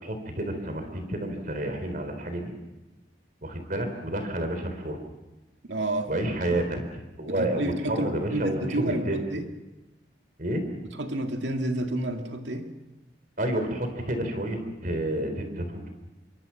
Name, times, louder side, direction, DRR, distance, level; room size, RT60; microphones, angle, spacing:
voice 1, 0.0-2.5 3.4-5.0 6.1-6.8 7.2-9.2 10.4-10.7 13.4-15.9, right 1 dB, 50° right, 6 dB, 3.8 m, -30 dB
voice 2, 5.7-6.2 6.5-6.6 7.3-9.5 10.9-12.7, right 1 dB, 85° right, 4 dB, 2.2 m, -30 dB
27.0 x 24.0 x 5.9 m, 0.99 s
head